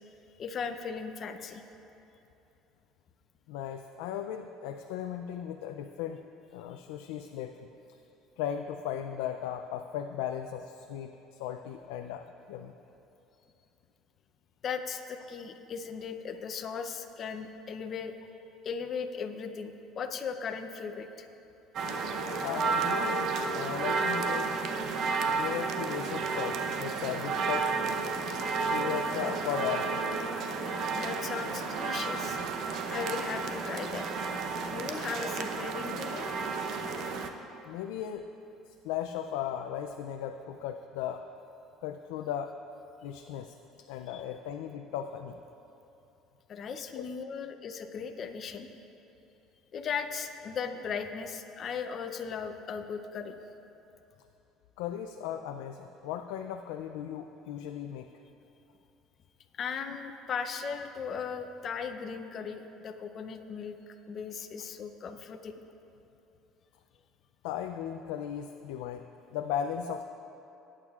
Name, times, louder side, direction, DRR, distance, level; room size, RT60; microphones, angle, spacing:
voice 1, 0.4-1.6 14.6-18.2 18.6-21.3 30.9-32.4 32.9-34.1 34.7-36.3 44.1-44.2 46.5-48.7 49.7-53.4 59.6-65.5, left 6 dB, 40° left, 6 dB, 0.6 m, -37 dB
voice 2, 3.5-6.2 6.5-7.7 8.4-12.7 22.4-24.6 25.4-27.7 28.5-30.1 37.6-38.3 38.8-41.3 41.8-42.5 43.0-45.4 47.0-47.1 54.8-58.1 67.4-69.0 69.3-70.0, left 9 dB, 90° left, 6 dB, 0.4 m, -36 dB
sound 1, 21.7-37.3, right 4 dB, 55° right, 0.7 m, -32 dB
20.0 x 8.8 x 2.4 m, 2.9 s
cardioid pair, 125°, 0 cm